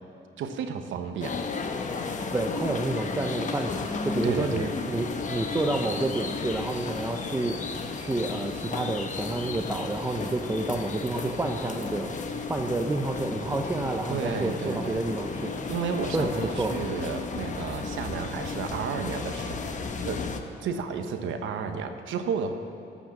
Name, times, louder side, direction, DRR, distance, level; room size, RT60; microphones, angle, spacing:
voice 1, 0.4-1.4 4.2-4.7 14.1-15.0 15.7-20.3 20.6-22.5, right 6 dB, 75° right, 7 dB, 1.0 m, -32 dB
sound 1, 1.2-20.4, left 4 dB, 40° left, 1.0 m, -33 dB
voice 2, 2.3-7.6 7.9-12.1 12.5-15.5 16.1-16.8, right 2 dB, 10° right, 3 dB, 0.7 m, -29 dB
13.0 x 6.2 x 7.4 m, 2.6 s
cardioid pair, 90°, 20 cm